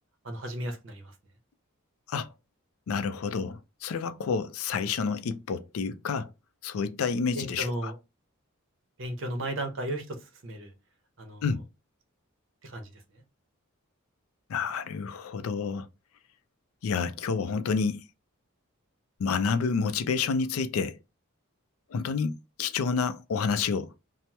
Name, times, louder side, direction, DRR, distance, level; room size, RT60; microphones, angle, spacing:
voice 1, 0.2-1.1 7.3-8.0 9.0-10.2 10.4-10.7 11.2-11.4 12.6-12.9, right 1 dB, 60° right, 0.7 m, -34 dB
voice 2, 2.9-6.3 6.6-7.9 11.4-11.7 14.5-15.9 16.8-18.0 19.2-21.0 21.9-23.9, left 5 dB, 80° left, 0.4 m, -29 dB
2.8 x 2.0 x 3.3 m
head